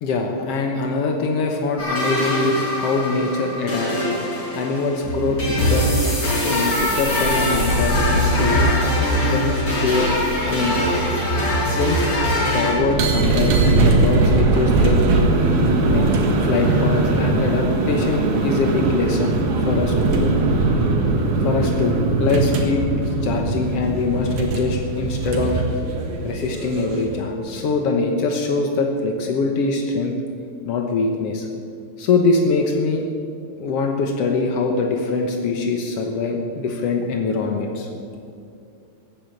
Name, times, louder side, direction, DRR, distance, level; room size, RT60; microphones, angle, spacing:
voice 1, 0.0-4.1 4.5-5.9 6.5-8.8 9.2-10.1 10.5-10.8 11.7-12.1 12.4-15.0 15.8-16.1 16.4-20.3 21.4-22.8 23.2-25.6 26.2-30.1 30.7-31.5 32.0-33.0 33.6-37.9, left 3 dB, 85° left, 3 dB, 1.3 m, -23 dB
sound 1, 1.8-12.7, left 1 dB, 35° left, 5.8 m, -23 dB
sound 2, 5.0-12.7, equal, 50° right, 2.2 m, -25 dB
sound 3, 12.7-27.2, right 3 dB, 70° right, 3.4 m, -20 dB
15.5 x 9.4 x 8.6 m, 2.4 s
omnidirectional pair, 4.4 m